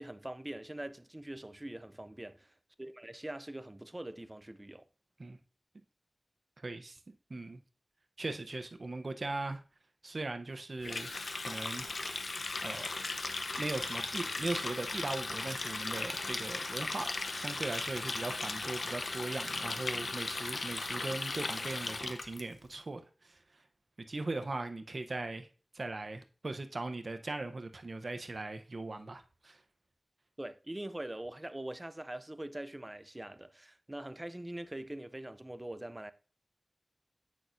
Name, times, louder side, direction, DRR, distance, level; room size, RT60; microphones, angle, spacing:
voice 1, 0.0-2.5 2.8-4.8 30.4-36.1, right 1 dB, 20° right, 0.5 m, -43 dB
voice 2, 6.6-7.0 7.3-7.6 8.2-9.6 10.0-11.1 11.4-11.9 12.6-12.9 13.6-17.1 17.3-23.4 24.1-25.5 25.7-29.6, right 2 dB, 60° right, 0.7 m, -39 dB
Water tap faucet, 10.8-22.4, left 3 dB, 75° left, 0.6 m, -37 dB
8.3 x 6.1 x 2.6 m
wide cardioid pair, 55°, 0 cm